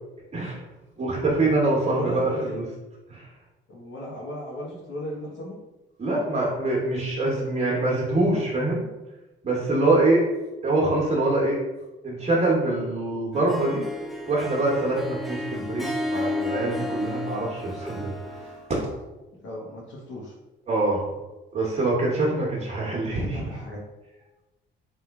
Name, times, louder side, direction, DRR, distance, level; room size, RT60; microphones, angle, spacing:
voice 1, 0.3-0.6 1.0-2.6 3.1-3.2 6.0-8.9 9.4-10.3 10.6-11.6 12.0-13.8 14.3-18.4 18.7-18.9 20.7-21.0 21.5-23.5, right 2 dB, 35° right, -4 dB, 1.0 m, -24 dB
voice 2, 1.9-2.6 3.7-5.6 19.4-20.3 23.0-23.8, equal, 75° left, -4 dB, 0.8 m, -35 dB
Harp, 13.3-18.7, left 2 dB, ahead, 0.3 m, -32 dB
3.1 x 2.3 x 3.5 m, 1.1 s
cardioid pair, 90°, 20 cm